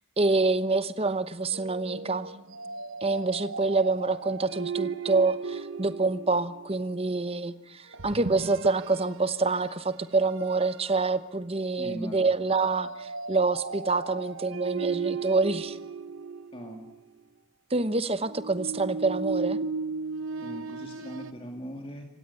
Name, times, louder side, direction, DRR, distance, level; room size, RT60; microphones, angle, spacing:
voice 1, 0.2-2.3 3.0-15.8 17.7-19.6, right 3 dB, 30° right, 13 dB, 1.0 m, -27 dB
sound 1, 1.5-6.8 7.9-9.2 9.6-9.8 10.4-10.9 12.5-16.9 18.2-21.3, right 4 dB, 75° right, 0.9 m, -36 dB
voice 2, 11.8-12.3 16.5-16.8 20.4-22.1, equal, 25° left, 3 dB, 2.3 m, -39 dB
27.0 x 17.0 x 9.8 m, 0.95 s
head